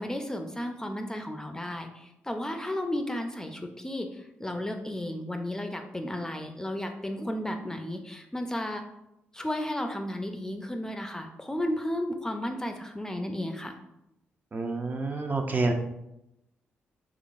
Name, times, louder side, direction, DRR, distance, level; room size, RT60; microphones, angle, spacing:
voice 1, 0.0-8.8 9.3-13.8, left 1 dB, 15° left, 5 dB, 0.5 m, -33 dB
voice 2, 14.5-15.7, right 3 dB, 40° right, 4 dB, 0.5 m, -28 dB
3.7 x 3.4 x 2.4 m, 0.85 s
cardioid pair, 60°, 5 cm